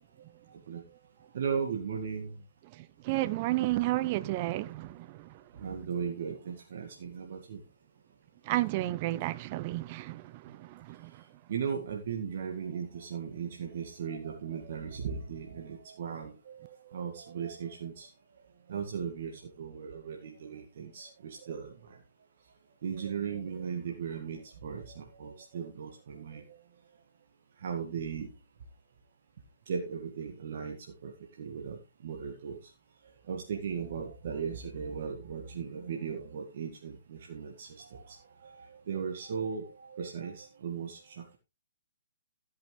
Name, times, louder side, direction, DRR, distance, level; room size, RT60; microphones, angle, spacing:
voice 1, 0.5-0.8 1.3-2.4 5.6-7.6 11.5-18.1 18.7-22.0 22.8-26.6 27.6-28.3 29.7-30.8 31.0-31.1 31.4-32.7 33.3-41.4, right 6 dB, 55° right, 1.9 m, -37 dB
voice 2, 3.0-5.3 8.5-11.1, right 17 dB, 35° right, 0.7 m, -32 dB
14.0 x 9.5 x 3.3 m
figure-of-eight pair, 135°, 0 cm